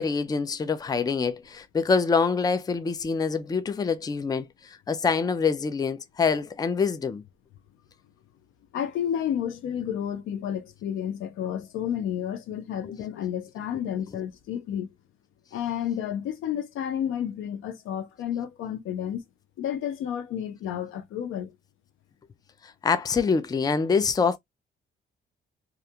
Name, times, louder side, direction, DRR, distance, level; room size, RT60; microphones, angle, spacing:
voice 1, 0.0-7.2 12.8-12.9 22.6-24.4, left 5 dB, 20° left, 0.4 m, -25 dB
voice 2, 8.7-14.9 15.5-19.2 19.6-21.5, left 9 dB, 85° left, 0.6 m, -31 dB
2.4 x 2.2 x 2.8 m
cardioid pair, 90°, 20 cm